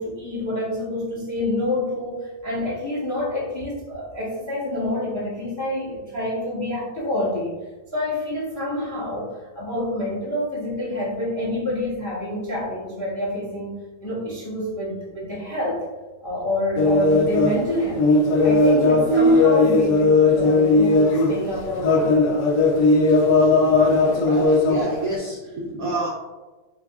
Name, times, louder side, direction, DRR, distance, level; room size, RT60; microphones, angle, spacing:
voice 1, 0.0-7.5 7.9-15.8 16.2-18.0 18.4-21.0 21.3-22.0, left 1 dB, 15° left, -6 dB, 0.7 m, -27 dB
sound 1, 16.8-25.2, left 2 dB, 75° left, 1.3 m, -17 dB
voice 2, 24.0-26.1, right 2 dB, 70° right, -3 dB, 0.8 m, -28 dB
5.5 x 2.3 x 2.3 m, 1.2 s
omnidirectional pair, 2.0 m